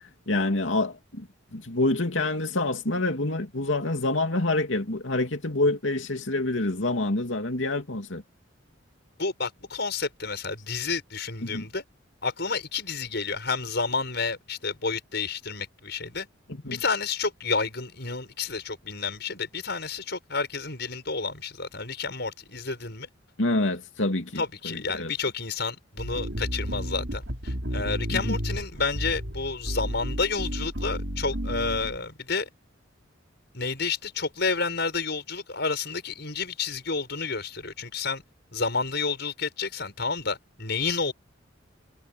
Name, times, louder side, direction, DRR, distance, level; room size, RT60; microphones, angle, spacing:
voice 1, 0.3-1.3 1.5-8.2 11.4-11.6 16.6-16.8 23.4-25.1 28.1-28.4, left 2 dB, 75° left, 2.8 m, -27 dB
voice 2, 9.2-11.8 12.2-16.3 16.6-23.1 24.4-32.5 33.5-38.2 38.5-41.1, left 4 dB, 60° left, 7.2 m, -30 dB
sound 1, 26.0-32.0, equal, 65° right, 5.4 m, -32 dB
head